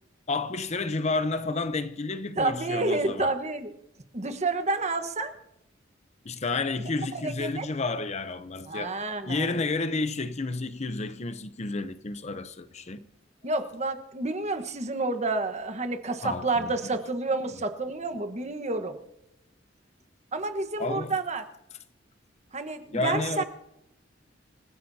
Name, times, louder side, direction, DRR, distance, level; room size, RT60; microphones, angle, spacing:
voice 1, 0.3-3.3 6.2-8.9 9.2-13.0 16.2-16.7 20.8-21.2 22.9-23.4, left 3 dB, 35° left, 0.7 m, -30 dB
voice 2, 2.4-3.7 4.1-5.3 7.1-7.6 8.7-9.6 13.4-19.0 20.3-21.4 22.5-23.4, right 3 dB, 35° right, 1.3 m, -29 dB
27.0 x 15.0 x 2.8 m
head